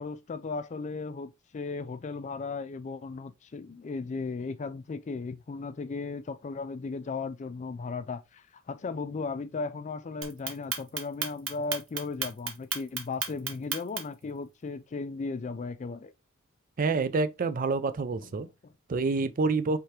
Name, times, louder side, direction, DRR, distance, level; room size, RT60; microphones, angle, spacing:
voice 1, 0.0-16.1 18.2-18.3 18.6-18.7, left 4 dB, 35° left, 0.4 m, -36 dB
Clock, 10.2-14.2, right 7 dB, 65° right, 0.9 m, -32 dB
voice 2, 16.8-18.5 18.9-19.8, right 4 dB, 40° right, 0.4 m, -27 dB
4.8 x 3.3 x 2.8 m
head